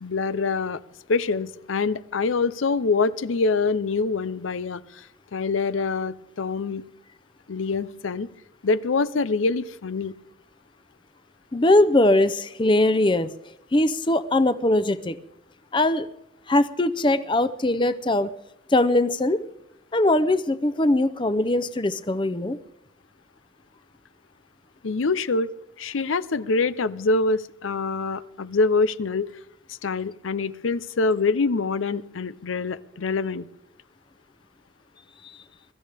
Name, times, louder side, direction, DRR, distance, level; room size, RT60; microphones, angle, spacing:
voice 1, 0.0-0.8 1.1-5.1 5.3-6.8 7.5-8.3 8.6-10.1 24.8-25.5 25.8-29.3 29.8-33.5, left 4 dB, 90° left, 16 dB, 0.6 m, -25 dB
voice 2, 11.5-13.3 13.7-15.2 15.7-16.1 16.5-18.3 18.7-19.4 19.9-22.6 35.2-35.4, left 1 dB, 25° left, 13 dB, 0.6 m, -21 dB
23.0 x 13.5 x 3.5 m, 0.84 s
head